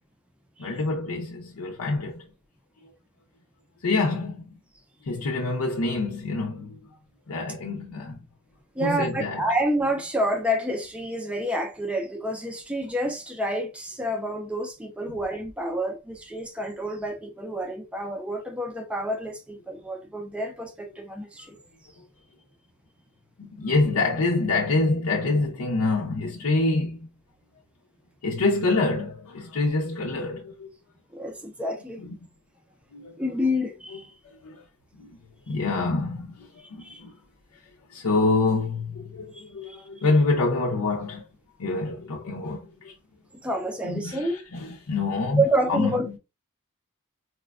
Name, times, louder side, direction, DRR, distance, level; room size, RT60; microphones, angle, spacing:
voice 1, 0.6-2.3 3.8-4.6 5.0-6.9 7.3-8.2 8.8-9.5 21.9-22.0 23.4-27.1 28.2-30.7 32.0-32.1 32.9-33.2 34.4-34.6 35.0-35.2 35.5-37.1 37.5-37.6 37.9-41.2 41.6-43.0 43.8-45.4 45.7-46.2, left 3 dB, 75° left, 0.6 m, -26 dB
voice 2, 8.8-21.6 31.1-32.0 33.2-34.1 36.8-37.0 39.3-39.8 43.4-44.4 45.4-46.2, right 1 dB, 5° right, 0.4 m, -28 dB
4.2 x 2.2 x 2.3 m
head